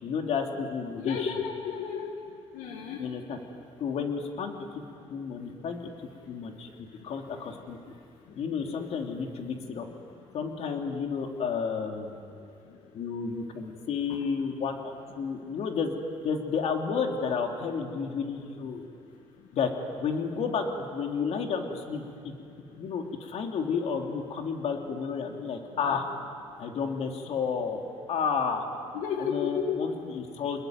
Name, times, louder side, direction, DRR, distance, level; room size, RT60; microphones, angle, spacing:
voice 1, 0.0-1.5 3.0-3.4 3.8-4.5 5.1-5.8 6.3-7.8 8.3-9.9 10.3-12.2 12.9-16.0 16.2-18.8 19.5-19.7 20.0-20.6 20.9-22.3 22.8-26.1 26.6-27.8 28.1-28.6 29.2-30.6, left 6 dB, 60° left, 3 dB, 3.1 m, -31 dB
voice 2, 1.0-2.1 2.5-3.0 28.9-29.8, left 7 dB, 80° left, 2 dB, 2.2 m, -32 dB
29.0 x 21.0 x 9.5 m, 2.4 s
cardioid pair, 95°, 12 cm